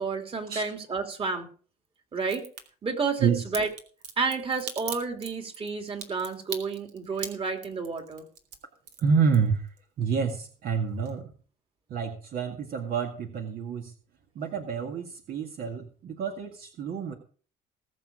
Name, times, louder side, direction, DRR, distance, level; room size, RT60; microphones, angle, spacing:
voice 1, 0.0-1.5 2.1-2.5 2.8-3.7 4.2-8.2, right 4 dB, 35° right, 4 dB, 2.9 m, -30 dB
Crack, 2.2-2.6 3.5-9.8 10.1-10.8 11.1-11.2, right 7 dB, 80° right, 2.6 m, -39 dB
voice 2, 9.0-9.7 10.0-11.3 11.9-13.9 14.4-17.1, right 6 dB, 60° right, 3 dB, 1.9 m, -28 dB
19.5 x 6.7 x 4.9 m, 0.42 s
cardioid pair, 110°, 17 cm